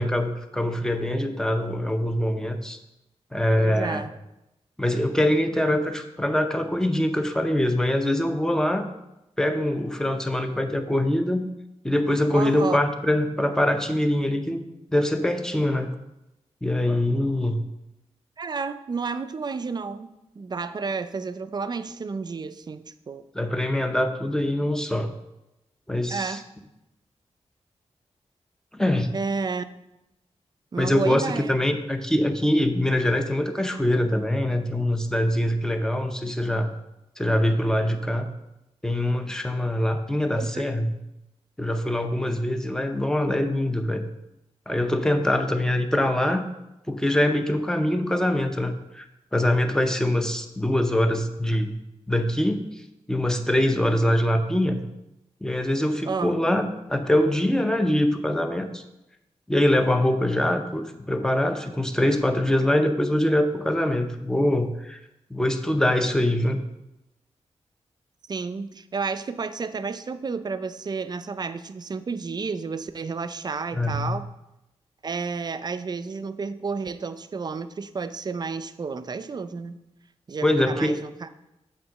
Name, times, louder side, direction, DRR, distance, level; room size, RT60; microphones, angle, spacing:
voice 1, 0.0-2.8 3.3-4.0 4.8-8.9 9.4-11.5 11.8-14.6 14.9-15.9 16.6-17.6 23.3-25.1 25.9-26.4 28.7-29.1 30.8-36.7 37.2-38.3 38.8-40.9 41.6-44.1 44.7-46.4 46.9-49.1 49.3-51.7 52.1-52.7 53.1-54.8 55.4-58.8 59.5-65.0 65.3-66.6 73.7-74.2 80.4-81.0, left 1 dB, 5° left, 7 dB, 0.6 m, -23 dB
voice 2, 3.6-4.1 12.3-12.8 18.4-20.1 20.4-23.2 26.1-26.4 29.1-29.6 30.7-31.6 40.3-40.6 56.1-56.3 68.3-74.2 75.0-79.8 80.3-81.3, right 4 dB, 40° right, 12 dB, 0.4 m, -31 dB
7.6 x 3.7 x 6.4 m, 0.91 s
wide cardioid pair, 115°, 11 cm